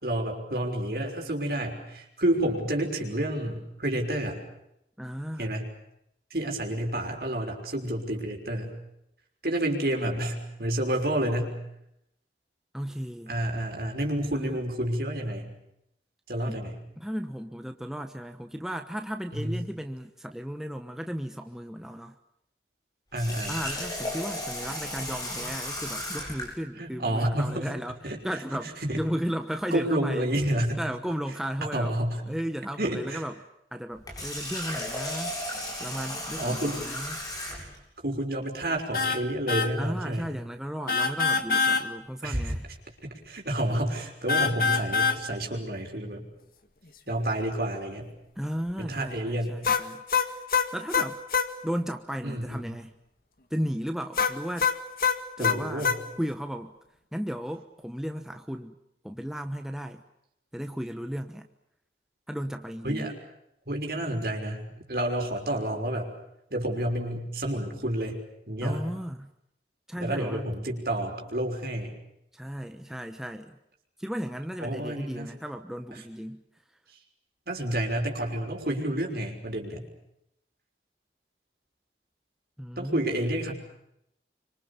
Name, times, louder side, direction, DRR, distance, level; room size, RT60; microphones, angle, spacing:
voice 1, 0.0-4.4 5.4-5.7 6.3-8.7 9.4-11.6 13.3-15.5 16.3-16.8 19.3-19.6 23.1-23.6 26.8-27.7 28.0-28.2 28.8-29.0 29.7-30.8 31.6-32.2 32.8-33.2 36.4-36.8 38.0-40.3 42.2-42.6 43.0-46.3 47.1-48.1 48.8-49.6 52.2-52.7 55.4-56.0 62.8-63.1 63.7-66.1 66.5-68.2 68.5-68.8 70.0-71.9 74.6-75.3 77.5-79.8 82.8-83.5, right 1 dB, 55° right, 2 dB, 5.9 m, -29 dB
voice 2, 5.0-5.5 12.7-13.4 14.3-14.6 16.4-16.7 17.0-22.1 23.5-28.0 28.2-28.7 29.0-30.3 30.8-32.0 32.3-33.4 33.7-35.4 35.8-37.2 39.8-42.6 48.4-50.0 50.7-51.2 51.6-52.9 53.5-54.7 55.4-55.9 56.2-56.7 57.1-58.7 59.0-60.0 60.5-61.5 62.3-63.1 68.6-69.3 69.9-70.5 72.3-73.6 74.0-76.4 82.6-83.1, equal, 5° right, 5 dB, 1.1 m, -35 dB
Water tap faucet, 23.1-26.5 33.9-37.8, left 1 dB, 20° left, 7.9 m, -35 dB
sound 1, 38.9-39.2 39.5-39.7 40.9-41.8 44.3-45.2 49.6-51.5 54.2-56.0, left 5 dB, 55° left, 1.9 m, -24 dB
27.0 x 25.5 x 7.0 m, 0.80 s
head